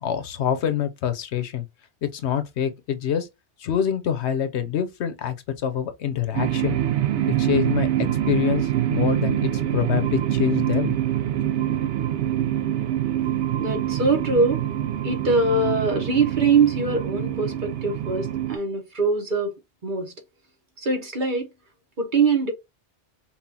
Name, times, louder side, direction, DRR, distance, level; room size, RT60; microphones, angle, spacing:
voice 1, 0.0-1.6 2.0-3.3 3.6-6.8 7.3-10.9, left 9 dB, 75° left, 0.9 m, -26 dB
sound 1, 6.3-18.6, right 11 dB, 80° right, 0.9 m, -25 dB
voice 2, 13.6-14.6 15.0-19.5 19.8-20.1 20.8-21.5 22.0-22.5, right 4 dB, 45° right, 1.2 m, -22 dB
5.5 x 2.4 x 2.7 m
omnidirectional pair, 1.2 m